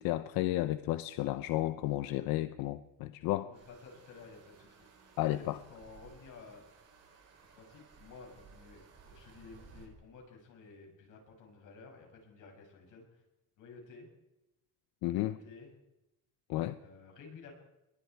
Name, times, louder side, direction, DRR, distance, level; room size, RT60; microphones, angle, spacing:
voice 1, 0.0-3.5 5.2-5.6 15.0-15.4 16.5-16.8, left 15 dB, 90° left, 12 dB, 0.9 m, -32 dB
voice 2, 3.3-4.8 5.3-6.7 7.5-13.2 13.6-14.1 15.0-15.7 16.8-17.5, left 4 dB, 60° left, 1 dB, 7.2 m, -53 dB
sound 1, 3.5-9.9, right 5 dB, 45° right, 7.0 m, -59 dB
29.5 x 22.0 x 4.7 m, 0.94 s
cardioid pair, 135°, 34 cm